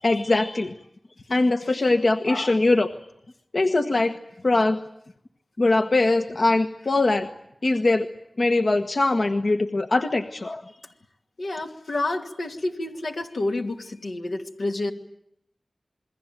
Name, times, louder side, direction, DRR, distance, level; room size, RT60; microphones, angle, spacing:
voice 1, 0.0-0.7 1.3-2.9 3.5-4.1 4.4-4.8 5.6-7.3 7.6-8.1 8.4-10.6, left 2 dB, 65° left, 5 dB, 1.3 m, -21 dB
voice 2, 11.4-14.9, left 2 dB, 90° left, 3 dB, 2.5 m, -29 dB
28.0 x 22.0 x 9.1 m, 0.75 s
wide cardioid pair, 55°, 0 cm